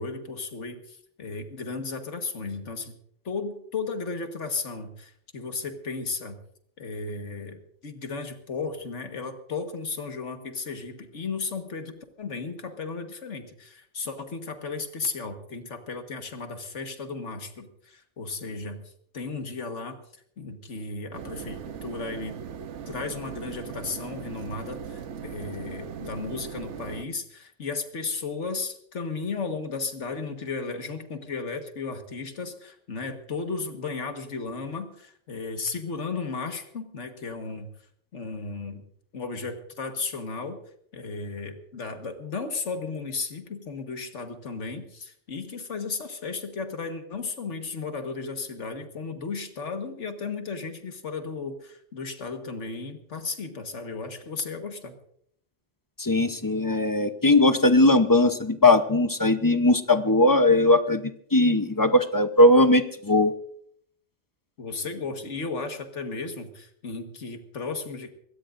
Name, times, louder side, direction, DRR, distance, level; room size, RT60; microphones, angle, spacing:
voice 1, 0.0-2.9 3.3-6.4 6.8-18.8 19.1-20.0 20.4-22.4 22.9-37.7 38.1-38.8 39.1-40.6 40.9-55.0 64.6-68.1, left 4 dB, 85° left, 6 dB, 1.8 m, -34 dB
sound 1, 21.1-27.1, right 7 dB, 85° right, 1.2 m, -39 dB
voice 2, 56.0-63.3, left 2 dB, 20° left, 10 dB, 0.7 m, -19 dB
23.5 x 17.0 x 2.6 m, 0.66 s
omnidirectional pair, 1.2 m